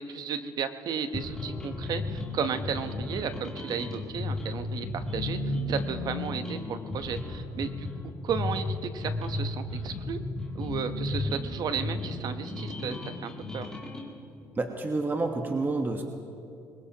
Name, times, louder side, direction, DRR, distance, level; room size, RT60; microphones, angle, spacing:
voice 1, 0.0-10.2 10.5-13.7, right 6 dB, 60° right, 9 dB, 1.0 m, -34 dB
sound 1, 1.1-14.1, left 2 dB, 10° left, 2.7 m, -34 dB
voice 2, 14.6-16.0, right 3 dB, 25° right, 4 dB, 1.2 m, -29 dB
22.0 x 20.0 x 2.9 m, 2.6 s
supercardioid pair, 85°, 8 cm